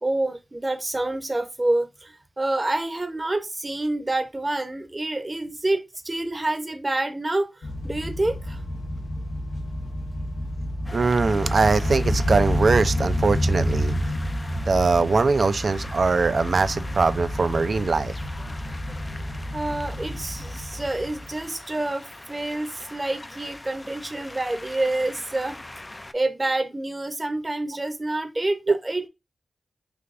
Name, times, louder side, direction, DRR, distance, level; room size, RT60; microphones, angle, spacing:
voice 1, 0.0-8.6 19.5-29.1, right 2 dB, 30° right, 0.7 m, -28 dB
sound 1, 7.6-21.4, equal, 85° left, 0.7 m, -29 dB
sound 2, 10.8-26.1, left 1 dB, 25° left, 0.3 m, -42 dB
voice 2, 10.9-13.9 14.7-18.1 28.7-28.8, right 4 dB, 65° right, 0.3 m, -21 dB
3.3 x 3.2 x 2.5 m
cardioid pair, 55°, 0 cm